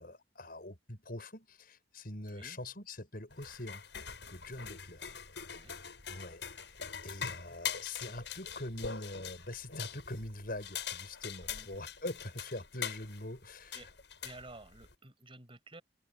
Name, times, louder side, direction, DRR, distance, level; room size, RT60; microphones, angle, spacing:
voice 1, 0.0-3.8 4.3-5.1 6.1-6.8 7.0-13.8, left 1 dB, 50° left, 7.6 m, -43 dB
voice 2, 2.3-2.6 5.5-5.7 11.5-11.7 13.7-13.9 14.2-15.8, right 2 dB, 30° right, 5.9 m, -52 dB
sound 1, 3.3-14.9, left 7 dB, 70° left, 7.1 m, -43 dB
head